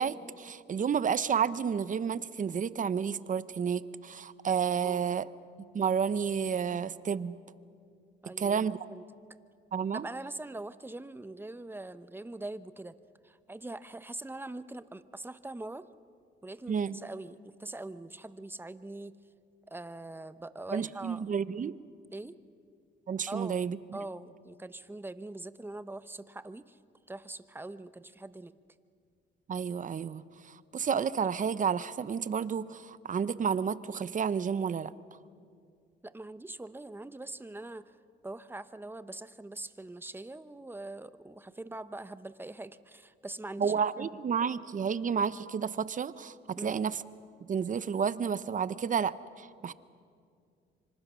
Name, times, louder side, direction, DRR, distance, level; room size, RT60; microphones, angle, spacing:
voice 1, 0.0-5.3 5.7-7.4 8.4-8.8 9.7-10.1 16.7-17.0 20.7-21.8 23.1-23.8 29.5-34.9 43.6-47.0 47.5-49.7, right 7 dB, 40° right, 16 dB, 0.8 m, -31 dB
voice 2, 8.2-9.0 9.9-12.9 13.2-15.9 16.4-19.1 19.7-21.2 22.1-22.4 23.3-23.6 23.9-26.8 27.1-28.5 36.0-38.0 38.2-43.7 46.6-46.8, right 2 dB, 10° right, 13 dB, 0.8 m, -43 dB
25.5 x 25.5 x 6.3 m, 2.3 s
cardioid pair, 90°, 20 cm